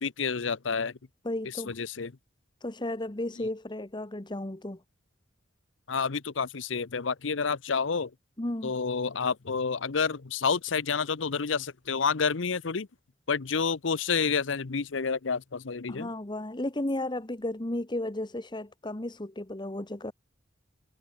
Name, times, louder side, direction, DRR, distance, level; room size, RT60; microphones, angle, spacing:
voice 1, 0.0-1.0 1.7-2.1 5.9-8.1 8.6-12.9 13.3-16.1, left 5 dB, 85° left, 0.8 m, -29 dB
voice 2, 1.2-1.7 2.6-4.8 8.4-8.7 15.9-20.1, left 1 dB, 25° left, 1.2 m, -34 dB
head